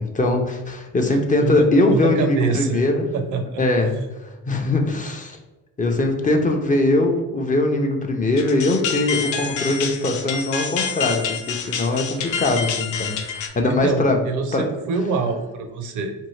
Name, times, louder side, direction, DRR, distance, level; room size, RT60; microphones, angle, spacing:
voice 1, 0.0-3.1 3.6-5.4 5.8-14.2 14.5-14.6, left 2 dB, 25° left, 2 dB, 0.5 m, -21 dB
voice 2, 1.4-2.8 3.1-4.1 13.6-16.1, right 4 dB, 75° right, 7 dB, 0.5 m, -25 dB
sound 1, 8.4-13.5, left 7 dB, 85° left, 0.4 m, -28 dB
2.7 x 2.6 x 3.1 m, 1.1 s
cardioid pair, 90°, 30 cm